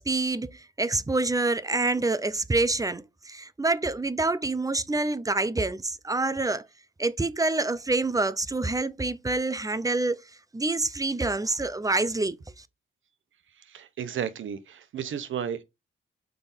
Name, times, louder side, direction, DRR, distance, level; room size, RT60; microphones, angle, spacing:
voice 1, 0.0-6.7 7.0-10.2 10.5-12.6, right 2 dB, 15° right, 0.7 m, -27 dB
voice 2, 13.7-15.6, right 8 dB, 80° right, 1.1 m, -33 dB
6.8 x 5.1 x 4.2 m
cardioid pair, 85°, 20 cm